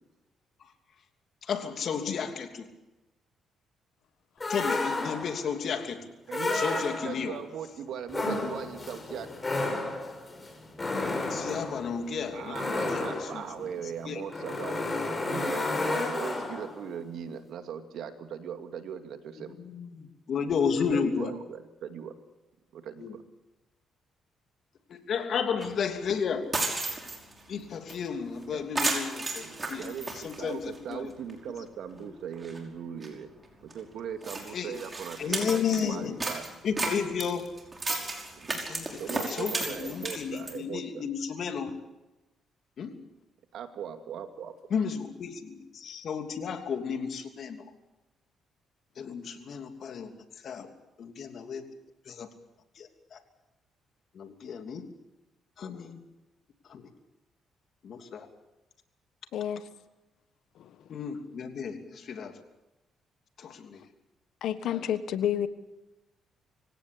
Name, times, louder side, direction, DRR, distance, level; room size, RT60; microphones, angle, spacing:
voice 1, 1.4-2.7 4.5-6.1 6.5-7.4 11.3-13.7 14.0-14.2 19.4-21.4 23.0-23.1 24.9-26.5 27.5-29.9 30.2-31.1 32.0-32.1 34.5-34.8 35.2-36.2 36.6-37.5 38.5-41.7 42.8-42.9 44.7-47.6 49.0-50.1 50.4-50.7 51.0-51.6 52.1-52.3 52.8-53.2 54.1-54.8 55.6-56.0 56.7-56.8 57.8-58.3 60.9-62.4 63.4-63.8 64.6-64.9, left 6 dB, 60° left, 6 dB, 2.9 m, -33 dB
sound 1, 4.4-5.5 6.3-7.3 8.1-16.8, left 2 dB, 25° left, 5.6 m, -32 dB
voice 2, 6.3-9.3 12.3-14.9 15.2-19.5 20.8-22.1 22.7-23.2 28.5-28.6 29.4-33.3 33.6-36.6 38.4-38.6 39.0-41.0 43.5-44.5, right 8 dB, 75° right, 7 dB, 2.4 m, -39 dB
sound 2, 25.6-25.7 26.1-26.2 26.4-27.4 27.9-28.0 28.3-28.4 28.8-30.9 31.3-31.4 32.0-32.1 32.3-32.6 33.0-33.1 33.7-33.8 34.2-35.8 36.2-40.6, right 3 dB, 25° right, 5.4 m, -33 dB
voice 3, 59.3-59.6 60.6-60.7 64.4-65.5, left 10 dB, 75° left, 13 dB, 1.3 m, -29 dB
25.5 x 17.0 x 8.5 m, 1.0 s
cardioid pair, 90°, 0 cm